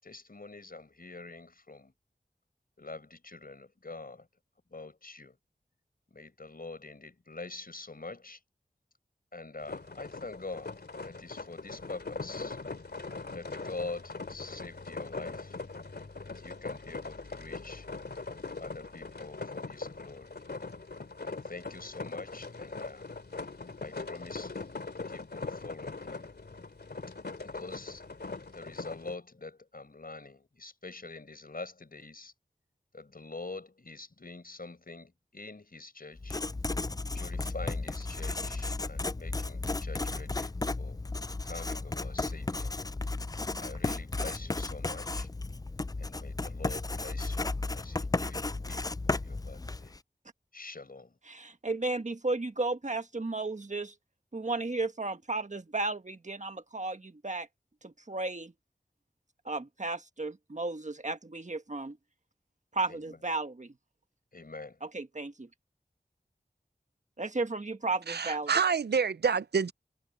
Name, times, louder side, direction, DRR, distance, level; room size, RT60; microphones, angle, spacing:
voice 1, 0.0-1.9 2.8-4.3 4.7-5.4 6.1-8.4 9.3-12.6 13.3-15.6 16.2-17.9 18.6-20.4 21.2-23.1 23.8-26.3 27.4-28.0 28.5-32.3 32.9-36.4 37.1-41.0 41.4-42.7 43.6-45.3 46.0-49.9 50.5-51.1 62.9-63.2 64.3-64.8, left 3 dB, 60° left, 5.5 m, -45 dB
sound 1, 9.6-29.1, left 3 dB, 80° left, 3.0 m, -41 dB
Writing, 36.2-50.0, left 3 dB, 20° left, 0.4 m, -34 dB
voice 2, 51.3-53.9 54.3-57.5 57.8-58.5 59.4-62.0 62.7-63.7 64.8-65.5 67.2-68.5, right 3 dB, 45° right, 1.5 m, -34 dB
voice 3, 68.1-69.7, right 6 dB, 85° right, 0.5 m, -27 dB
wide cardioid pair, 55°, 17 cm